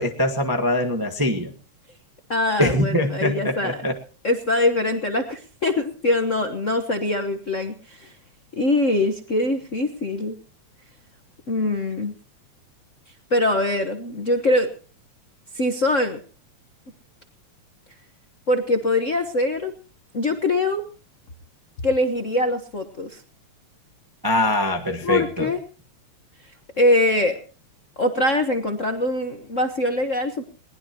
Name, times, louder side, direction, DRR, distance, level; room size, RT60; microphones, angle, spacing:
voice 1, 0.0-1.5 2.6-3.9 24.2-25.5, left 1 dB, 35° right, 3 dB, 0.3 m, -23 dB
voice 2, 2.3-3.8 4.2-8.1 8.6-10.3 11.5-12.2 13.3-14.7 15.5-16.2 18.5-19.7 20.1-20.8 21.8-23.2 25.0-25.6 26.8-27.4 28.0-30.4, left 1 dB, 50° left, 5 dB, 0.9 m, -23 dB
21.5 x 19.0 x 3.0 m, 0.37 s
omnidirectional pair, 3.3 m